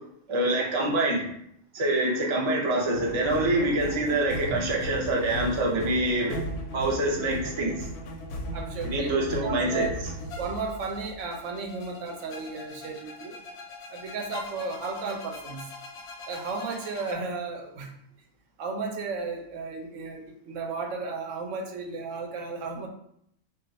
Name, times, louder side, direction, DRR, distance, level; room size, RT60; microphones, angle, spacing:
voice 1, 0.3-1.3 1.7-6.4 6.7-7.9 8.8-9.8, right 1 dB, 40° right, -2 dB, 0.4 m, -25 dB
sound 1, 2.9-17.1, left 1 dB, 65° left, 0.8 m, -38 dB
voice 2, 8.5-9.9 10.4-13.4 13.9-15.7 16.3-17.9 18.6-22.9, right 4 dB, 80° right, 2 dB, 0.9 m, -34 dB
2.3 x 2.3 x 3.8 m, 0.71 s
omnidirectional pair, 1.3 m